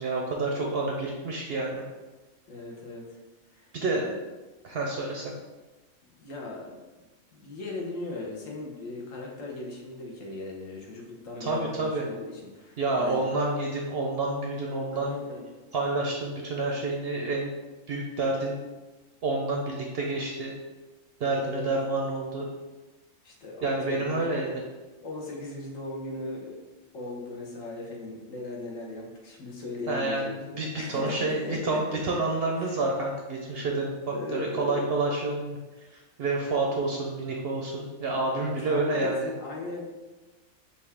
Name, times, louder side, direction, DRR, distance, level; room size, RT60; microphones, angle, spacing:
voice 1, 0.0-1.8 3.7-4.0 4.6-5.3 11.4-12.1 12.8-15.2 15.7-17.6 17.9-18.6 19.2-20.5 21.2-22.5 23.6-24.5 29.9-35.6 36.2-39.3, right 2 dB, 60° right, -1 dB, 0.6 m, -29 dB
voice 2, 2.5-3.2 3.5-4.2 6.0-6.8 7.3-13.3 14.9-15.4 21.4-21.7 23.2-24.3 25.0-26.6 26.9-32.2 32.6-32.7 33.5-33.7 34.1-34.8 38.7-39.9, left 2 dB, 70° left, -1 dB, 1.3 m, -38 dB
5.6 x 2.5 x 3.3 m, 1.2 s
omnidirectional pair, 1.4 m